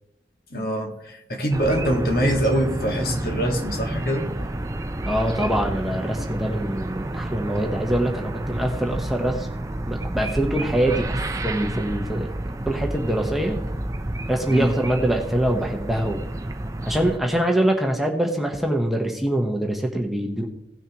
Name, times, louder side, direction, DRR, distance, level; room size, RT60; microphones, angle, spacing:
voice 1, 0.5-4.4 14.5-14.8, right 1 dB, 55° left, 2 dB, 1.7 m, -24 dB
sound 1, 1.5-17.2, right 1 dB, 20° right, 0.5 m, -30 dB
voice 2, 5.0-9.5 9.9-12.3 12.6-13.6 14.3-16.2 16.8-20.5, right 1 dB, ahead, 1 dB, 1.0 m, -24 dB
17.0 x 6.6 x 3.0 m, 0.86 s
head